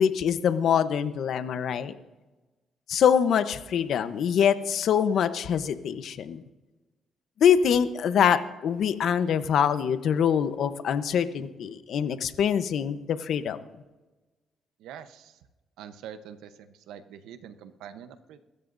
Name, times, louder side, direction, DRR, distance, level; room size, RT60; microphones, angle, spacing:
voice 1, 0.0-1.9 2.9-6.4 7.4-13.6, left 8 dB, 70° left, 11 dB, 0.9 m, -24 dB
voice 2, 14.8-15.3 15.8-18.4, right 9 dB, 90° right, 10 dB, 0.9 m, -44 dB
23.5 x 13.5 x 2.7 m, 1.1 s
cardioid pair, 90°, 0 cm